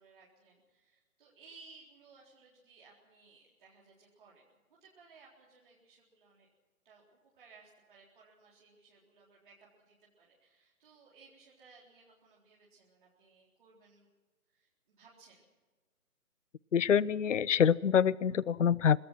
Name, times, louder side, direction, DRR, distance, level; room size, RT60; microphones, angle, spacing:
voice 1, 0.0-6.5 6.8-14.1 14.5-15.4, right 4 dB, 35° right, -5 dB, 4.1 m, -60 dB
voice 2, 16.7-19.0, left 8 dB, 55° left, 23 dB, 0.6 m, -26 dB
26.0 x 20.0 x 6.1 m, 1.3 s
figure-of-eight pair, 155°, 44 cm